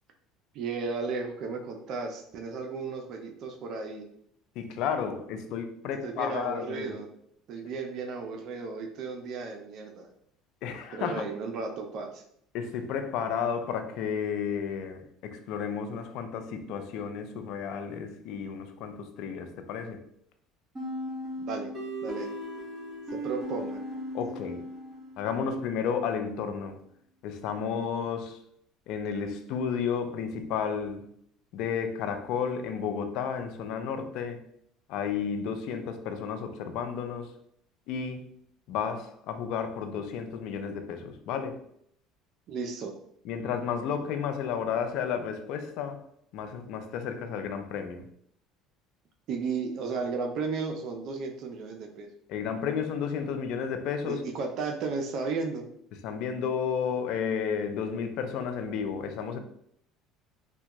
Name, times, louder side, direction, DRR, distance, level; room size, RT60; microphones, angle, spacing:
voice 1, 0.5-4.0 6.0-7.1 7.5-10.1 10.9-12.2 21.4-21.7 22.0-22.3 23.1-23.8 42.5-42.9 49.3-52.1 54.0-55.7, right 4 dB, 60° right, 3 dB, 0.4 m, -34 dB
voice 2, 4.6-7.0 10.6-11.2 12.5-20.0 24.1-24.6 25.2-26.8 27.2-28.4 28.9-31.0 31.5-34.4 34.9-37.3 37.9-38.3 38.7-41.6 43.3-46.0 46.3-48.1 52.3-54.2 56.0-59.4, left 7 dB, 70° left, 7 dB, 0.4 m, -32 dB
sound 1, 20.7-25.4, equal, 20° right, 1.3 m, -37 dB
3.4 x 2.2 x 2.9 m, 0.69 s
supercardioid pair, 95°, 0 cm